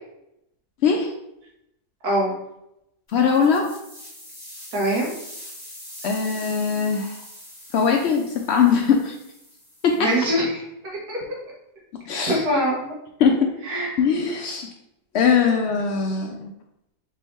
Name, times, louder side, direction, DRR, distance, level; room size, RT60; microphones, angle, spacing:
voice 1, 3.1-3.7 6.0-7.2 7.7-9.1 9.8-10.0 12.1-12.4 13.2-13.5 14.0-14.7 15.1-16.5, left 6 dB, 90° left, 2 dB, 0.5 m, -20 dB
sound 1, 3.1-10.2, equal, ahead, 1.2 m, -43 dB
voice 2, 4.7-5.1 10.0-10.6 11.1-11.2 12.2-12.9 13.6-13.9, right 1 dB, 75° right, -3 dB, 1.8 m, -23 dB
4.6 x 3.4 x 3.0 m, 0.83 s
omnidirectional pair, 1.7 m